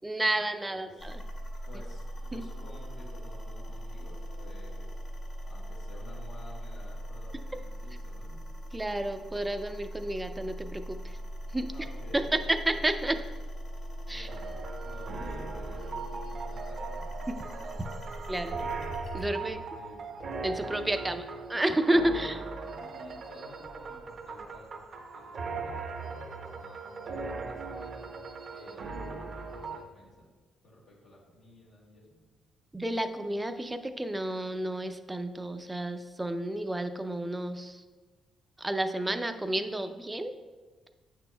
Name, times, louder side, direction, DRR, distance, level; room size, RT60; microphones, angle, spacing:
voice 1, 0.0-1.2 2.3-2.4 8.7-11.2 11.5-11.7 12.1-13.2 14.1-14.3 17.3-17.4 18.3-18.6 19.1-19.6 20.4-21.2 21.5-22.4 32.7-37.8 38.6-40.3, right 1 dB, 15° right, 8 dB, 0.4 m, -31 dB
voice 2, 0.7-1.1 1.7-4.9 5.4-8.4 11.7-12.8 13.0-13.3 14.1-18.8 19.4-20.1 21.1-21.3 22.7-24.7 25.0-28.1 28.5-30.3 30.6-32.2, left 1 dB, 80° left, -5 dB, 1.6 m, -52 dB
sound 1, 1.0-19.3, equal, 50° left, 1.5 m, -40 dB
sound 2, 14.3-29.8, right 4 dB, 55° right, 0.6 m, -39 dB
8.4 x 6.1 x 2.2 m, 1.3 s
cardioid pair, 90°, 0 cm